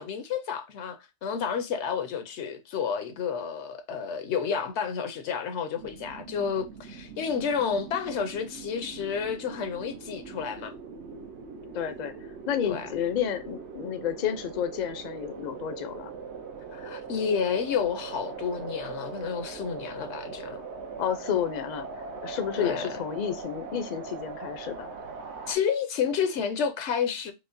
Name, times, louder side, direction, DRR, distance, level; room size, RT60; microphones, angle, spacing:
voice 1, 0.0-10.7 12.6-12.9 16.7-20.6 22.6-22.9 25.5-27.3, left 6 dB, 80° left, 0.9 m, -30 dB
sound 1, 5.8-25.6, right 5 dB, 75° right, 1.0 m, -41 dB
voice 2, 11.7-12.1 12.5-16.1 21.0-24.9, left 8 dB, 55° left, 0.5 m, -31 dB
4.9 x 2.1 x 2.5 m
omnidirectional pair, 1.2 m